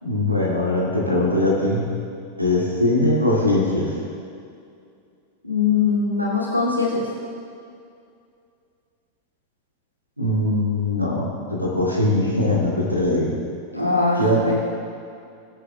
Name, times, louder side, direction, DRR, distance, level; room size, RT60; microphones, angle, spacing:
voice 1, 0.0-1.9 2.4-3.9 10.2-11.2 11.5-13.3 14.2-14.4, left 1 dB, 85° right, -4 dB, 2.2 m, -21 dB
voice 2, 5.4-7.1 13.7-14.6, left 4 dB, 90° left, -7 dB, 2.6 m, -21 dB
19.5 x 8.3 x 2.3 m, 2.4 s
figure-of-eight pair, 90°, 0 cm